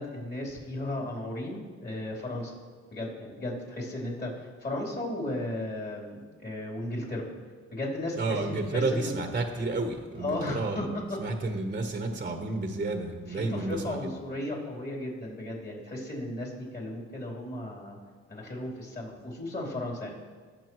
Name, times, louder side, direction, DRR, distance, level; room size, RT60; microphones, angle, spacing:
voice 1, 0.0-2.5 2.9-7.3 7.7-9.1 10.2-11.2 13.3-18.0 18.3-20.1, left 1 dB, 35° left, -3 dB, 3.4 m, -35 dB
voice 2, 8.2-10.9 11.2-14.1, right 3 dB, 30° right, 4 dB, 1.0 m, -31 dB
20.0 x 6.7 x 3.1 m, 1.5 s
cardioid pair, 90°, 30 cm